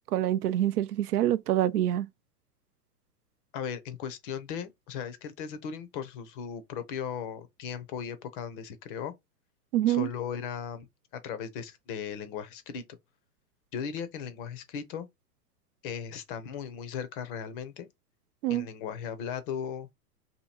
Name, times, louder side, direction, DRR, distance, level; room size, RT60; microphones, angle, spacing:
voice 1, 0.1-2.1 9.7-10.1 18.4-18.7, right 12 dB, 65° right, 0.6 m, -26 dB
voice 2, 3.5-9.1 9.9-10.9 11.1-12.8 13.7-15.1 15.8-17.9 18.5-19.9, left 7 dB, 35° left, 0.6 m, -37 dB
2.8 x 2.7 x 4.1 m
hypercardioid pair, 125°, 49 cm